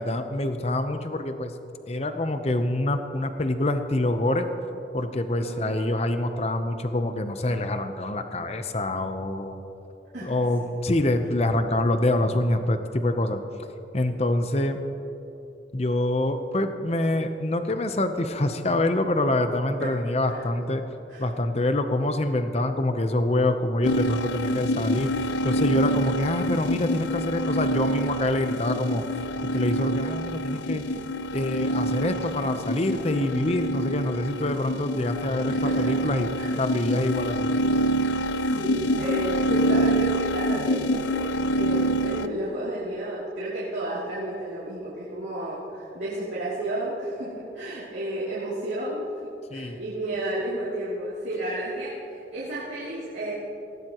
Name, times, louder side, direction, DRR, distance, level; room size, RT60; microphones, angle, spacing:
voice 1, 0.0-1.5 1.9-4.5 4.9-9.6 10.2-13.4 13.9-14.8 15.7-20.8 21.2-30.8 31.3-36.3 36.6-37.5 49.5-49.8, left 1 dB, 35° left, 8 dB, 0.8 m, -26 dB
voice 2, 5.4-5.9 10.1-10.7 19.8-19.9 20.3-20.4 21.1-21.3 35.5-36.0 36.3-36.5 38.1-53.3, right 1 dB, 80° right, -9 dB, 2.8 m, -32 dB
sound 1, 23.8-42.3, equal, 85° left, 0.5 m, -26 dB
19.0 x 17.0 x 3.0 m, 3.0 s
head